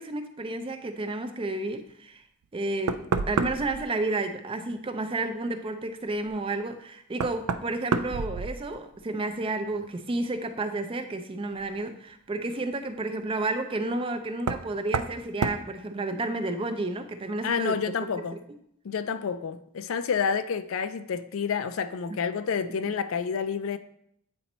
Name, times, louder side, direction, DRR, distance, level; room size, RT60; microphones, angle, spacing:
voice 1, 0.0-2.2 2.5-18.1, right 2 dB, 25° right, 0.4 m, -31 dB
Knock, 2.4-2.5 2.9-3.8 6.3-6.4 7.1-9.0 9.3-9.9 11.6-11.7 14.4-14.7 14.9-15.2 15.4-15.6, right 5 dB, 90° right, 0.4 m, -29 dB
voice 2, 17.4-18.4 18.8-23.8, left 6 dB, 70° left, 0.4 m, -29 dB
8.5 x 4.2 x 3.0 m
head